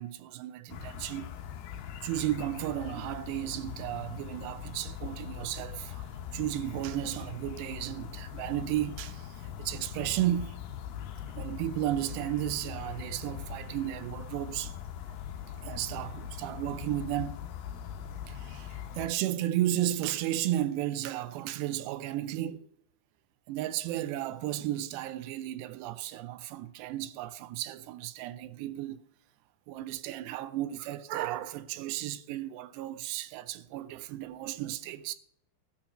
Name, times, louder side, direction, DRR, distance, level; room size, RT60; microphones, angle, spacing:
voice 1, 0.0-1.3 2.0-6.1 6.3-9.3 9.6-10.5 11.3-14.7 15.6-17.4 18.3-22.6 23.5-29.0 29.7-35.1, right 13 dB, 80° right, 2.7 m, -34 dB
sound 1, 0.7-19.1, left 9 dB, 70° left, 2.2 m, -41 dB
12.5 x 6.5 x 8.8 m
omnidirectional pair, 5.0 m